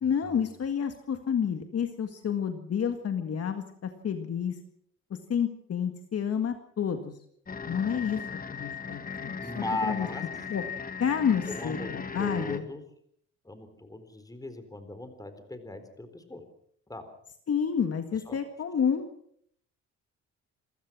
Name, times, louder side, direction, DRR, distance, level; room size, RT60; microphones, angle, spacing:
voice 1, 0.0-4.6 5.1-7.2 7.7-8.2 8.5-10.1 10.5-10.6 11.0-12.7 17.5-19.1, left 7 dB, 50° left, 7 dB, 1.9 m, -29 dB
sound 1, 7.5-12.6, left 5 dB, 30° left, 2.0 m, -38 dB
voice 2, 9.4-10.2 11.5-11.9 12.2-12.8 13.4-16.4 16.9-17.1 18.3-18.4, left 2 dB, 10° left, 9 dB, 4.0 m, -37 dB
27.0 x 15.5 x 6.2 m, 0.68 s
cardioid pair, 90°, 30 cm